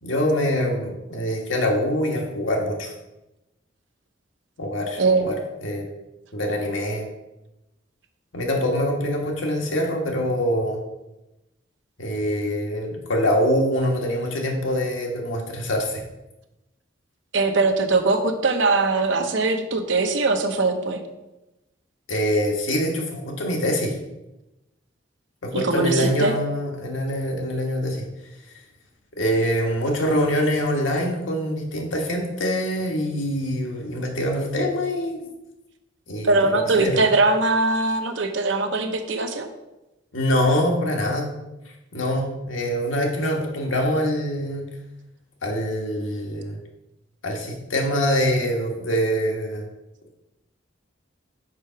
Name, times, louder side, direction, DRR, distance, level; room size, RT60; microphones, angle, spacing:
voice 1, 0.0-2.9 4.6-5.9 6.3-7.1 8.3-10.8 12.0-16.0 22.1-24.0 25.4-28.0 29.2-35.2 36.1-37.0 40.1-41.3 41.9-44.7 45.4-46.6 47.2-49.7, equal, 80° left, 0 dB, 1.4 m, -24 dB
voice 2, 5.0-5.3 17.3-21.0 25.5-26.3 36.2-39.5, right 3 dB, 65° right, 6 dB, 0.8 m, -21 dB
5.0 x 4.8 x 5.6 m, 0.97 s
head